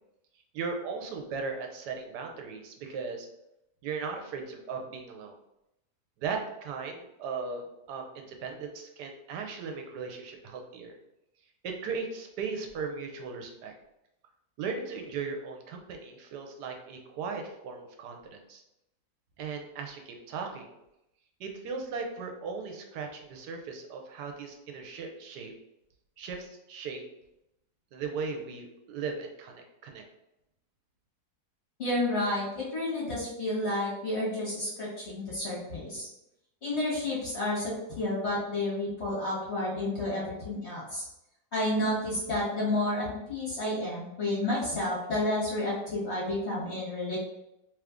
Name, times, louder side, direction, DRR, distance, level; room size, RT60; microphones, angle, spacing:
voice 1, 0.5-3.3 3.8-5.4 6.2-11.0 11.6-13.7 14.6-18.6 19.4-20.8 21.4-25.5 26.2-27.0 27.9-30.0, right 5 dB, 80° right, 3 dB, 1.2 m, -37 dB
voice 2, 31.8-36.1 36.6-41.0 41.5-47.2, left 1 dB, 45° left, -7 dB, 1.4 m, -30 dB
3.0 x 2.5 x 3.4 m, 0.85 s
omnidirectional pair, 1.8 m